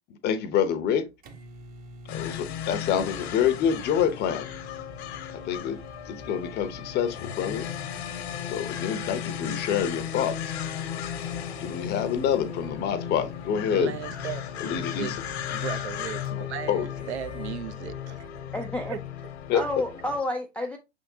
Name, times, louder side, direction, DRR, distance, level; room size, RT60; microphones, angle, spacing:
voice 1, 0.2-1.1 2.1-4.5 5.3-5.8 6.1-7.7 8.4-10.5 11.6-13.9 14.6-15.2 16.7-16.9 19.5-19.6, left 8 dB, 30° left, 0.7 m, -27 dB
sound 1, 0.7-17.6, right 1 dB, 25° right, 0.7 m, -48 dB
sound 2, 2.1-20.2, left 9 dB, 65° left, 1.0 m, -35 dB
voice 2, 13.7-15.1 15.5-18.3 18.8-19.0, right 10 dB, 70° right, 0.6 m, -36 dB
voice 3, 18.5-19.0 19.5-20.8, left 1 dB, 5° left, 0.3 m, -30 dB
5.6 x 3.6 x 2.6 m
hypercardioid pair, 105°, 34 cm